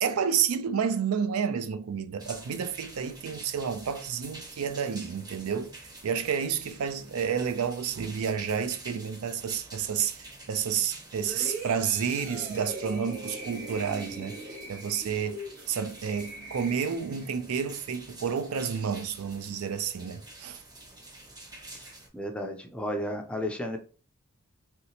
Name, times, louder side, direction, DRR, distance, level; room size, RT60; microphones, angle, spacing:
voice 1, 0.0-14.4 14.7-15.4 15.7-20.6, right 7 dB, 80° right, 0.4 m, -30 dB
sound 1, 2.2-22.1, right 2 dB, 20° right, 0.8 m, -48 dB
sound 2, 11.2-17.3 17.8-18.0, right 1 dB, 45° right, 1.5 m, -41 dB
voice 2, 22.1-23.8, left 1 dB, 5° left, 0.4 m, -33 dB
3.1 x 2.8 x 2.8 m
head